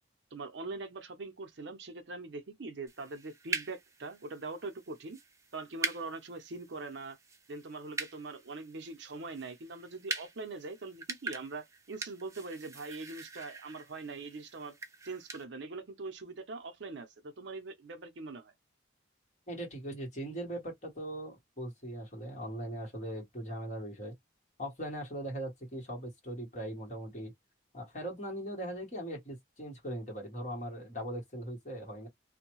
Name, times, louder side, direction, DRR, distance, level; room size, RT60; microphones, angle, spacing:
voice 1, 0.3-5.2 5.5-7.2 7.5-14.8 15.0-18.5, right 3 dB, 60° right, 0.6 m, -42 dB
sound 1, 2.9-15.4, right 3 dB, 15° right, 0.4 m, -43 dB
voice 2, 19.5-24.1 24.6-27.3 27.7-32.1, right 1 dB, 35° left, 1.4 m, -40 dB
2.6 x 2.2 x 3.0 m
head